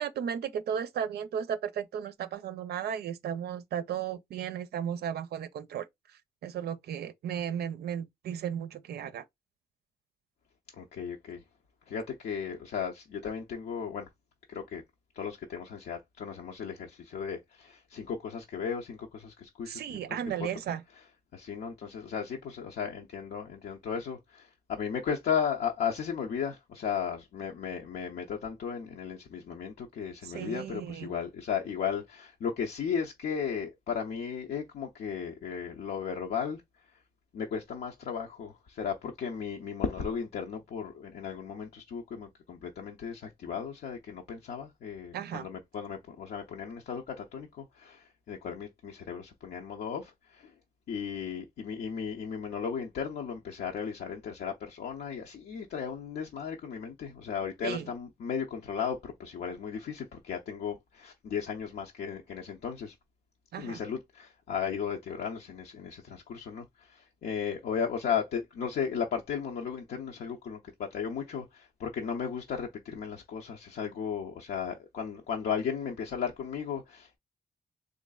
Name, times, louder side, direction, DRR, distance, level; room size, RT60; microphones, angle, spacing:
voice 1, 0.0-5.9 6.4-9.2 19.7-20.8 30.2-31.1 45.1-45.5 57.6-57.9 63.5-63.8, right 8 dB, 85° right, 0.5 m, -35 dB
voice 2, 10.8-11.4 11.9-14.1 14.5-14.8 15.2-20.2 21.3-36.6 37.3-50.5 50.9-62.9 63.6-77.2, left 7 dB, 85° left, 0.6 m, -35 dB
3.8 x 3.1 x 2.2 m
cardioid pair, 105°, 16 cm